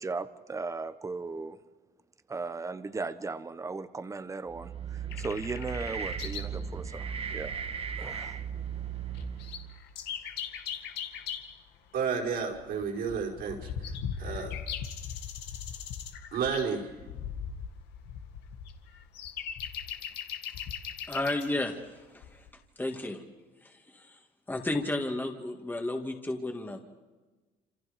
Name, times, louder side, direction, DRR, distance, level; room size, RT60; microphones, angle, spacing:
voice 1, 0.0-1.6 2.3-7.7 8.0-8.4, right 3 dB, 20° right, 11 dB, 1.2 m, -37 dB
sound 1, 4.5-9.8, right 7 dB, 35° right, 1.3 m, -37 dB
sound 2, 5.1-6.6 6.8-6.9 7.7-7.8 7.9-8.3 8.7-8.8 9.1-11.5 12.2-21.5 22.2-22.5, left 8 dB, 85° left, 2.0 m, -39 dB
voice 2, 11.9-14.5 16.3-16.9, right 6 dB, 70° right, -1 dB, 5.3 m, -32 dB
voice 3, 21.1-21.7 22.1-22.2 22.8-23.2 23.6-24.1 24.5-26.8, left 2 dB, 10° left, 3 dB, 2.1 m, -32 dB
27.5 x 27.0 x 5.2 m, 1.2 s
cardioid pair, 110°, 17 cm